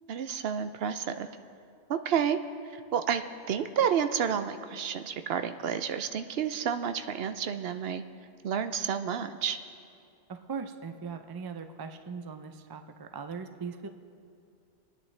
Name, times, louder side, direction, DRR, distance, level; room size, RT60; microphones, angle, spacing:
voice 1, 0.1-1.3 1.9-2.4 2.7-3.2 3.5-8.0 8.4-9.6, right 8 dB, 65° right, 9 dB, 0.8 m, -30 dB
voice 2, 10.3-13.9, right 5 dB, 40° right, 8 dB, 0.3 m, -39 dB
21.5 x 10.0 x 3.3 m, 2.4 s
omnidirectional pair, 1.2 m